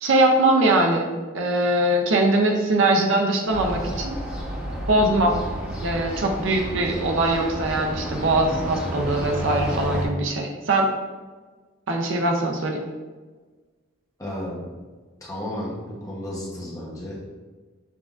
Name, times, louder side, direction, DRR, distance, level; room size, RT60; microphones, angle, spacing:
voice 1, 0.0-4.2 4.9-5.3 5.8-10.9 11.9-12.8, right 2 dB, 65° right, 2 dB, 0.5 m, -21 dB
sound 1, 3.5-10.1, right 1 dB, 10° right, 0.9 m, -31 dB
voice 2, 14.2-14.6 15.2-17.3, left 1 dB, 15° left, -5 dB, 0.8 m, -33 dB
7.1 x 2.5 x 2.4 m, 1.3 s
head